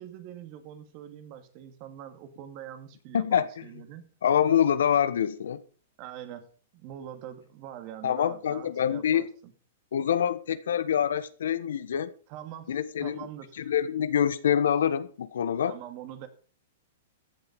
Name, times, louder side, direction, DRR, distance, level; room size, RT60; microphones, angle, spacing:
voice 1, 0.0-4.1 6.0-9.5 12.3-13.7 15.7-16.3, right 10 dB, 45° right, 2.2 m, -44 dB
voice 2, 3.1-3.5 4.2-5.6 8.0-9.3 9.9-12.1 12.7-13.3 13.6-15.7, left 9 dB, 75° left, 1.1 m, -25 dB
14.5 x 8.1 x 5.2 m
hypercardioid pair, 120°, 0 cm